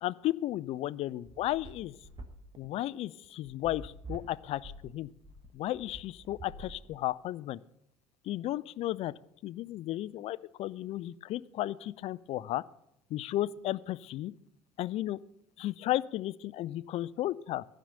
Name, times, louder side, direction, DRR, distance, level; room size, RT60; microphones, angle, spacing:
voice 1, 0.0-1.9 2.6-5.1 5.5-7.6 8.2-9.1 9.4-12.6 13.1-14.3 14.8-15.2 15.6-17.6, left 14 dB, 40° left, 16 dB, 0.4 m, -34 dB
sound 1, 0.7-7.3, right 2 dB, 30° right, 1.2 m, -47 dB
13.0 x 5.1 x 6.8 m, 0.79 s
figure-of-eight pair, 60°, 16 cm